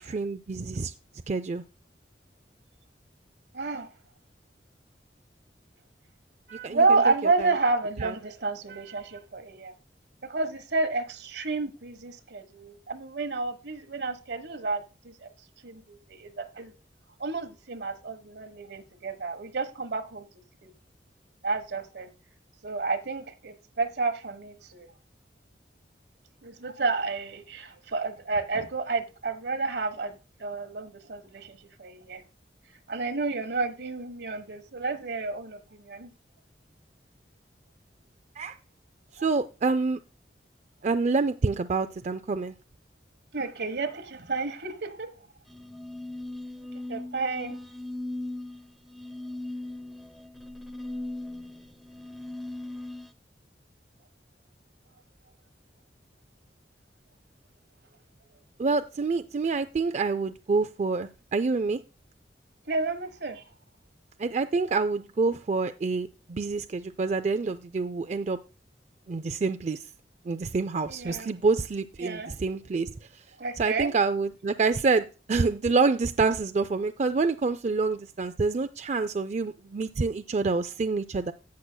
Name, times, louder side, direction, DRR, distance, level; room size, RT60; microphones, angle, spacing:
voice 1, 0.1-0.9 1.3-1.6 6.6-6.8 8.0-8.1 38.4-38.6 39.2-40.0 40.8-42.5 58.6-61.8 64.2-68.4 69.1-69.9 70.3-73.2 73.6-81.3, right 4 dB, 40° right, 0.4 m, -27 dB
voice 2, 3.5-3.9 6.5-9.7 10.2-15.3 15.6-16.7 17.2-20.3 20.6-20.7 21.4-22.1 22.6-24.9 26.4-32.2 32.9-36.1 39.2-39.3 43.3-45.1 46.9-47.6 62.7-63.4 70.9-71.3 72.0-72.3 73.4-73.9, right 3 dB, 75° right, 1.3 m, -30 dB
sound 1, 45.5-53.1, left 1 dB, ahead, 0.7 m, -38 dB
16.5 x 6.3 x 2.2 m
head